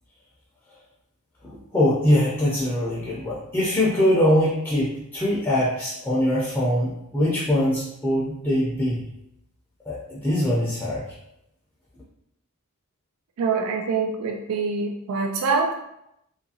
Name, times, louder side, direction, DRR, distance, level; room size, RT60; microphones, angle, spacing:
voice 1, 1.4-9.0 9.9-11.0, left 1 dB, 10° left, -7 dB, 0.5 m, -22 dB
voice 2, 13.4-15.7, right 4 dB, 75° right, 3 dB, 0.3 m, -25 dB
2.6 x 2.5 x 2.7 m, 0.81 s
head